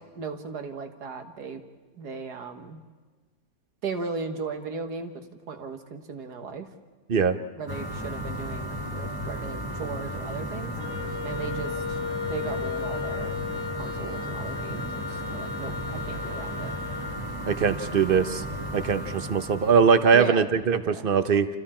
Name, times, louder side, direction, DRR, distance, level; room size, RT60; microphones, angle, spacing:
voice 1, 0.1-1.6 1.9-2.8 3.8-6.7 7.6-10.7 11.2-13.4 13.7-16.8 20.1-20.5 20.8-21.1, right 5 dB, 60° right, 7 dB, 2.0 m, -36 dB
sound 1, 7.7-20.1, equal, 10° right, 1.8 m, -34 dB
Wind instrument woodwind instrument, 10.8-17.3, left 7 dB, 60° left, 1.4 m, -35 dB
voice 2, 17.5-18.4 18.7-21.5, right 6 dB, 40° right, 10 dB, 0.9 m, -21 dB
29.5 x 28.5 x 4.5 m, 1.4 s
omnidirectional pair, 2.0 m